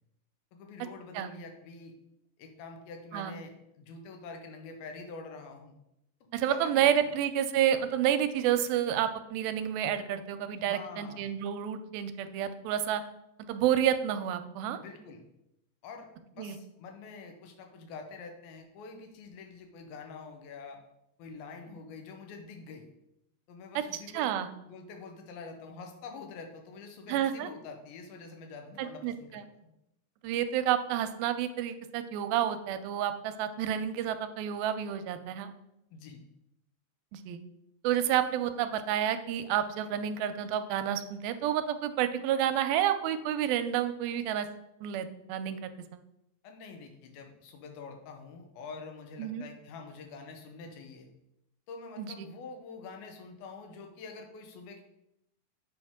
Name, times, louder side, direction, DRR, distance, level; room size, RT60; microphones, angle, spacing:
voice 1, 0.5-1.9 2.4-5.7 6.5-6.9 10.6-11.3 14.8-15.2 15.8-20.8 21.2-22.9 23.5-24.3 24.7-29.7 35.9-36.2 46.4-51.1 51.7-54.8, left 4 dB, 85° left, 4 dB, 2.8 m, -46 dB
voice 2, 6.3-13.0 13.5-14.8 16.4-16.6 24.1-24.5 27.1-27.5 29.0-29.4 30.2-35.5 37.1-37.4 37.8-44.5 44.8-45.7 49.2-49.4 52.0-52.3, right 10 dB, 85° right, 10 dB, 2.4 m, -29 dB
7.9 x 5.3 x 3.6 m, 0.85 s
omnidirectional pair, 4.2 m